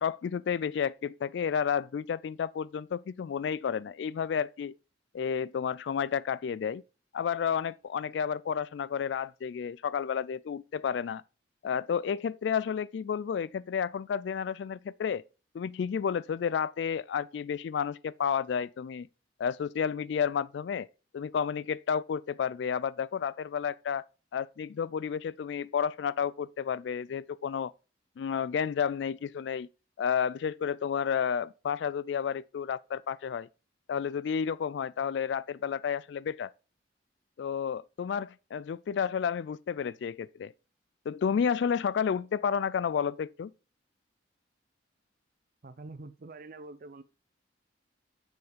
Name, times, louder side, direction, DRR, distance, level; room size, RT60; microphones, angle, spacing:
voice 1, 0.0-4.7 5.1-6.8 7.1-11.2 11.6-15.2 15.5-19.1 19.4-20.9 21.1-24.0 24.3-27.7 28.2-29.7 30.0-33.5 33.9-36.5 37.4-40.5 41.1-43.5, left 7 dB, 65° left, 0.3 m, -31 dB
voice 2, 45.6-47.0, right 2 dB, 50° right, 0.5 m, -45 dB
7.1 x 6.5 x 5.0 m
head